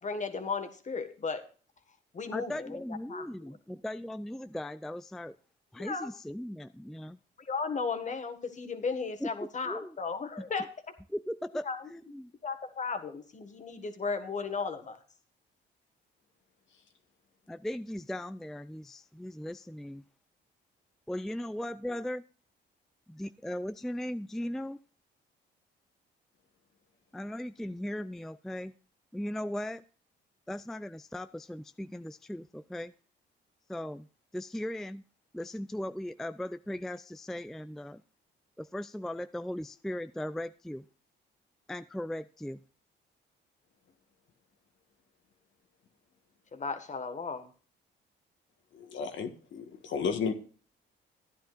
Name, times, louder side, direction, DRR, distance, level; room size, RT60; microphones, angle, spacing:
voice 1, 0.0-1.4 2.1-2.8 3.1-3.5 5.8-6.1 7.4-10.7 11.6-11.8 12.4-15.0 46.5-47.5, left 4 dB, 40° left, 8 dB, 1.7 m, -35 dB
voice 2, 2.3-5.4 5.7-7.2 9.2-9.3 9.6-10.0 10.4-10.5 11.1-12.3 17.5-20.0 21.1-22.2 23.1-24.8 27.1-28.7 29.1-29.8 30.5-32.9 33.7-34.1 34.3-35.0 35.3-38.0 38.6-40.9 41.7-42.6, left 1 dB, ahead, 12 dB, 0.4 m, -38 dB
voice 3, 48.7-50.3, left 6 dB, 70° left, 5 dB, 1.6 m, -33 dB
14.5 x 10.0 x 2.5 m, 0.40 s
cardioid pair, 90°, 20 cm